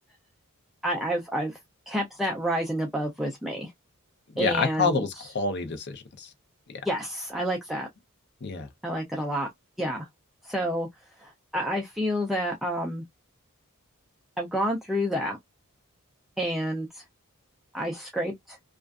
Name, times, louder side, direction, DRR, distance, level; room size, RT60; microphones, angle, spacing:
voice 1, 0.8-1.6 1.9-3.7 4.4-5.3 6.8-7.9 8.8-9.5 9.8-10.1 10.4-10.9 11.2-13.0 14.4-15.4 16.4-17.0 17.7-18.6, equal, ahead, 0.4 m, -29 dB
voice 2, 4.4-6.3 6.7-6.8 8.4-8.7, left 4 dB, 50° left, 0.6 m, -28 dB
2.4 x 2.3 x 2.3 m
head